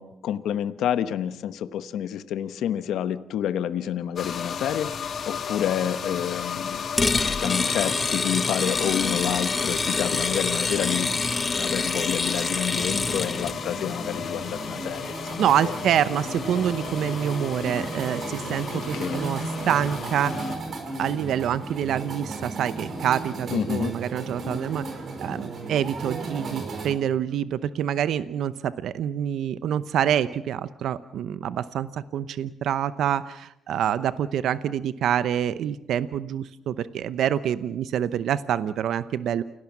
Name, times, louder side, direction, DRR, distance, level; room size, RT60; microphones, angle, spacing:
voice 1, 0.0-6.8 7.2-11.1 11.5-15.7 18.7-19.2 23.5-23.9, left 10 dB, 80° left, 12 dB, 1.0 m, -29 dB
sound 1, 4.2-20.6, left 6 dB, 55° left, 2.6 m, -34 dB
sound 2, 7.0-13.6, left 3 dB, 30° left, 0.9 m, -26 dB
sound 3, 12.7-26.9, right 3 dB, 55° right, 5.1 m, -35 dB
voice 2, 15.4-20.4 21.0-24.8 25.2-39.4, right 9 dB, 75° right, 14 dB, 0.8 m, -26 dB
29.5 x 17.5 x 7.3 m, 0.84 s
cardioid pair, 90°, 0 cm